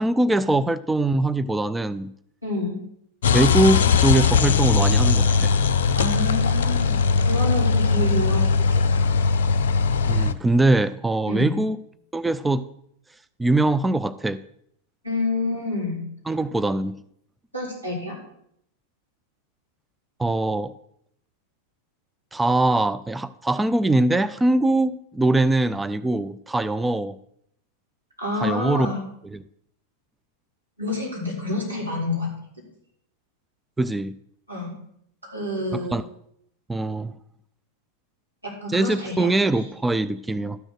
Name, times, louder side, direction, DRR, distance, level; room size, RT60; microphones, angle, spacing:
voice 1, 0.0-2.1 3.3-5.5 10.1-11.8 12.1-12.7 13.4-14.4 16.3-17.0 20.2-20.7 22.3-27.2 28.4-28.9 29.3-29.4 33.8-34.1 35.7-36.0 36.7-37.1 38.7-40.6, right 2 dB, 10° right, 14 dB, 0.4 m, -22 dB
voice 2, 2.4-2.8 5.9-9.0 11.3-11.6 15.0-16.0 17.5-18.2 28.2-29.0 30.8-32.3 34.5-34.7 35.2-36.0 38.4-39.6, left 2 dB, 90° right, -5 dB, 4.7 m, -28 dB
sound 1, 3.2-10.3, left 5 dB, 60° left, 0.5 m, -20 dB
12.5 x 6.3 x 6.2 m, 0.72 s
figure-of-eight pair, 90°, 0 cm